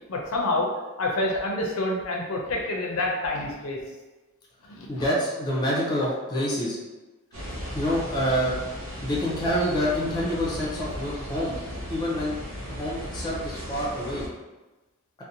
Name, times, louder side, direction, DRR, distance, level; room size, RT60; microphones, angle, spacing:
voice 1, 0.1-0.7 1.0-3.8 4.7-5.0, left 2 dB, 80° left, 0 dB, 0.5 m, -27 dB
voice 2, 4.9-6.8 7.7-8.5 9.0-11.5 11.9-12.4 12.7-14.2, equal, 20° left, -5 dB, 0.6 m, -27 dB
sound 1, 7.3-14.3, equal, 85° right, 0.7 m, -36 dB
2.5 x 2.0 x 2.7 m, 1.1 s
head